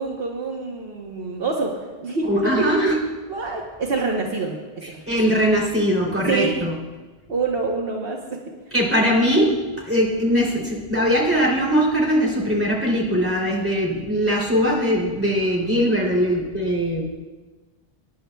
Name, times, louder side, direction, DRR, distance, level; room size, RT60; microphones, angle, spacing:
voice 1, 0.0-3.0 3.3-5.0 6.3-6.6 7.3-8.4, right 4 dB, 65° right, 0 dB, 1.2 m, -26 dB
voice 2, 2.3-3.0 4.8-6.7 8.7-9.5 9.8-17.0, equal, 10° right, -4 dB, 2.8 m, -21 dB
22.0 x 10.5 x 2.3 m, 1.3 s
omnidirectional pair, 1.1 m